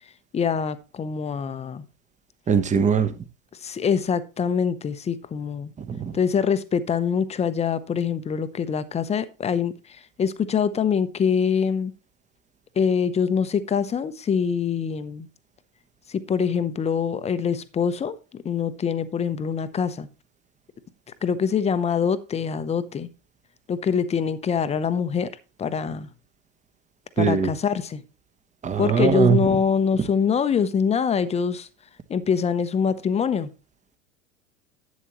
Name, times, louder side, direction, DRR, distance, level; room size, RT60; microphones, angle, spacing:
voice 1, 0.3-1.8 3.6-5.7 6.1-11.9 12.8-15.3 16.1-20.1 21.2-23.1 23.7-25.3 25.6-26.1 27.2-28.0 28.8-31.7 32.1-33.5, left 6 dB, 15° left, 14 dB, 0.8 m, -24 dB
voice 2, 2.5-3.1 5.9-6.2 27.2-27.5 28.6-29.6, right 7 dB, 20° right, 11 dB, 1.1 m, -21 dB
11.0 x 8.2 x 3.1 m, 0.31 s
hypercardioid pair, 95°, 39 cm